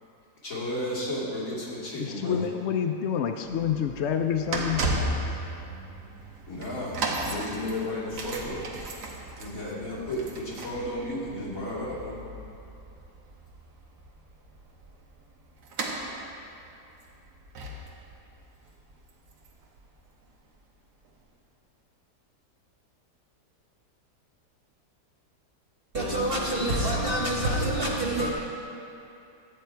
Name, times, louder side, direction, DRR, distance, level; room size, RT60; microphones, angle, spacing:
voice 1, 0.4-2.5 6.5-8.6 9.4-12.2, left 1 dB, 55° left, -7 dB, 2.8 m, -33 dB
voice 2, 2.0-4.8, left 8 dB, 80° left, 6 dB, 0.6 m, -28 dB
sound 1, 3.4-20.4 21.1-21.2, right 2 dB, 85° right, 1.7 m, -36 dB
voice 3, 25.9-28.3, right 1 dB, 40° right, -3 dB, 1.0 m, -26 dB
12.5 x 8.4 x 4.5 m, 2.7 s
omnidirectional pair, 1.7 m